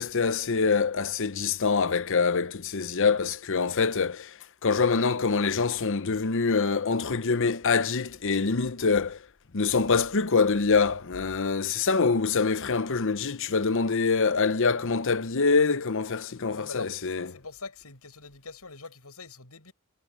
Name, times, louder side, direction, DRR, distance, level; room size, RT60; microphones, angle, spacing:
voice 1, 0.0-4.3 4.6-9.2 9.5-17.3, left 4 dB, 60° left, 0.8 m, -25 dB
voice 2, 16.5-19.7, left 3 dB, 85° left, 6.7 m, -43 dB
head